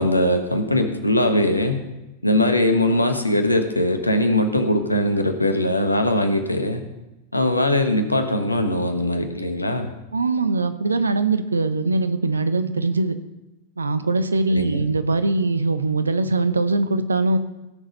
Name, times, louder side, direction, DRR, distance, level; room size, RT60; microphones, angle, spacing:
voice 1, 0.0-1.8 2.2-6.8 7.3-9.9 14.5-14.8, left 1 dB, 85° left, 7 dB, 1.3 m, -21 dB
voice 2, 10.1-13.2 13.8-17.4, right 3 dB, 75° right, 12 dB, 0.8 m, -21 dB
16.5 x 6.4 x 5.4 m, 0.96 s
figure-of-eight pair, 90°, 0 cm